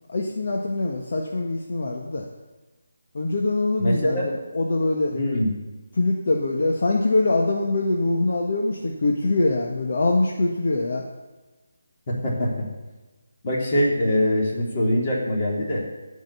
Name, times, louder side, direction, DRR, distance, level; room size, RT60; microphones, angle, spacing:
voice 1, 0.1-2.3 3.1-5.1 6.0-11.0, left 2 dB, 55° left, 0 dB, 1.5 m, -23 dB
voice 2, 3.8-4.2 5.1-5.5 12.1-12.7 13.4-15.8, left 1 dB, 30° left, -3 dB, 3.3 m, -23 dB
15.5 x 5.5 x 6.9 m, 1.2 s
figure-of-eight pair, 170°, 0 cm